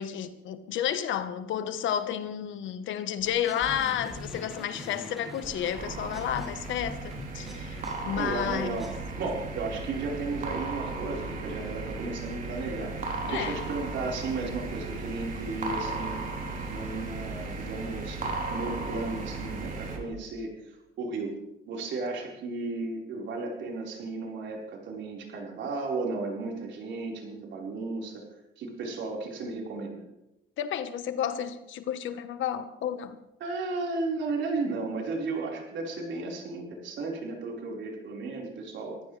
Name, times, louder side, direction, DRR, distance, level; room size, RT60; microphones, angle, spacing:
voice 1, 0.0-8.9 13.3-13.6 30.6-33.2, left 10 dB, 75° left, 1.3 m, -31 dB
sound 1, 3.2-9.0, left 1 dB, ahead, 4.4 m, -42 dB
sound 2, 5.7-20.0, right 3 dB, 40° right, 3.4 m, -36 dB
voice 2, 8.2-12.9 13.2-16.2 16.7-18.2 18.5-20.5 21.0-21.4 21.7-28.2 28.6-30.0 33.4-39.0, right 3 dB, 70° right, 4.6 m, -34 dB
24.5 x 15.0 x 3.4 m
cardioid pair, 140°, 20 cm